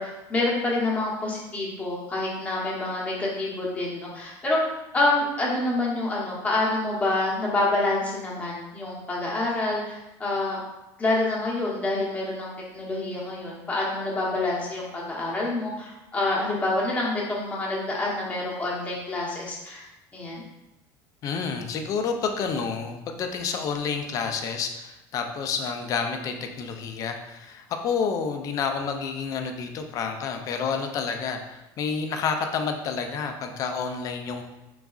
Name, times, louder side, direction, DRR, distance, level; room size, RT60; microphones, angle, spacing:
voice 1, 0.0-4.6 4.9-10.6 11.0-19.9 20.1-20.4, left 2 dB, 15° left, -5 dB, 0.9 m, -27 dB
voice 2, 21.2-34.4, left 5 dB, 40° left, 5 dB, 0.4 m, -29 dB
3.9 x 3.5 x 2.3 m, 0.96 s
cardioid pair, 155°, 9 cm